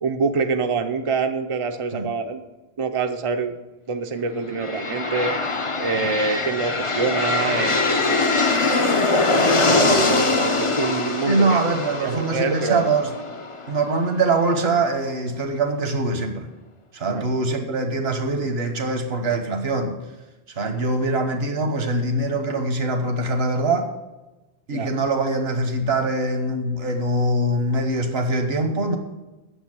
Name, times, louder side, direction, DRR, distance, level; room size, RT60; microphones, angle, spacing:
voice 1, 0.0-2.4 2.8-3.5 3.9-5.3 5.8-8.5 9.6-11.6 12.0-12.9 17.1-17.3 24.7-24.9, right 4 dB, 35° right, 5 dB, 0.7 m, -26 dB
sound 1, 4.5-14.3, left 3 dB, 30° left, 0.9 m, -22 dB
voice 2, 11.3-13.1 13.7-16.5 16.9-20.0 20.5-23.9 24.7-29.0, right 2 dB, 70° right, 5 dB, 1.6 m, -23 dB
8.8 x 7.1 x 8.9 m, 1.1 s
omnidirectional pair, 1.1 m